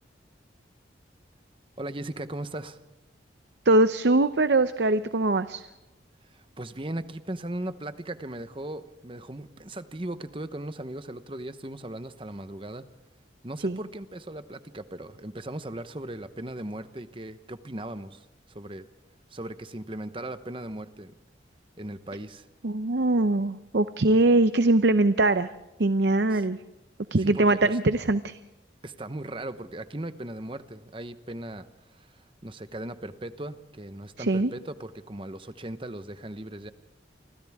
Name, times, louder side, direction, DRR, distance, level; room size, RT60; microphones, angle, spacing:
voice 1, 1.8-2.8 6.3-12.8 13.4-18.9 19.3-21.1 21.8-22.5 26.3-26.4 27.2-27.7 28.8-36.7, right 1 dB, 25° right, 11 dB, 1.0 m, -38 dB
voice 2, 3.6-5.7 13.6-13.8 22.6-25.5 25.8-26.6 27.1-28.4 34.2-34.5, right 2 dB, 65° right, 12 dB, 0.7 m, -22 dB
29.5 x 24.5 x 3.6 m, 1.0 s
head